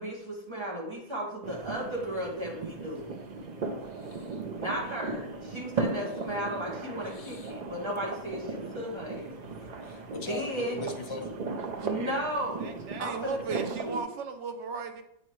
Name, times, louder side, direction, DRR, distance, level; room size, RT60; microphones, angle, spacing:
voice 1, 0.0-3.1 4.5-9.4 10.2-10.8 11.8-14.0, equal, 25° right, -4 dB, 1.5 m, -35 dB
sound 1, 1.4-14.0, right 3 dB, 50° right, 0.6 m, -37 dB
voice 2, 3.9-4.4 7.0-7.5 9.6-11.3, left 3 dB, 65° left, 4 dB, 1.0 m, -41 dB
voice 3, 11.8-12.2 12.6-15.0, right 5 dB, 75° right, 8 dB, 0.8 m, -36 dB
8.7 x 4.5 x 3.0 m, 0.83 s
omnidirectional pair, 1.2 m